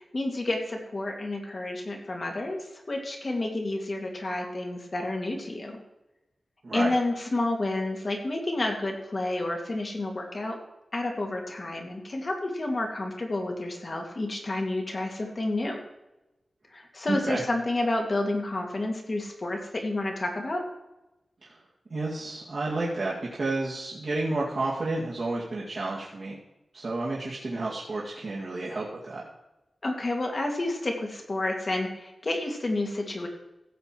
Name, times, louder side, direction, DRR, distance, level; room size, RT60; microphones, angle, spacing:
voice 1, 0.0-2.6 2.9-5.8 6.7-10.6 10.9-15.8 16.7-20.6 29.8-33.3, left 2 dB, 40° left, 2 dB, 2.2 m, -30 dB
voice 2, 6.6-6.9 17.1-17.4 21.4-21.6 21.9-26.4 26.7-29.2, right 2 dB, 55° right, -6 dB, 2.2 m, -31 dB
15.5 x 7.0 x 4.6 m, 0.96 s
wide cardioid pair, 120°, 0 cm